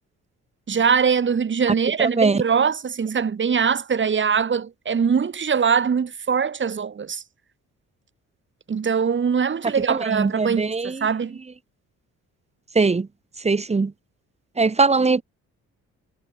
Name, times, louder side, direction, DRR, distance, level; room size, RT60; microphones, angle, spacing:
voice 1, 0.7-7.2 8.7-11.4, right 6 dB, 40° right, 3.1 m, -22 dB
voice 2, 2.0-2.4 9.9-11.1 12.7-13.1 13.4-13.9 14.6-15.2, right 4 dB, 20° right, 1.1 m, -21 dB
cardioid pair, 90°, 30 cm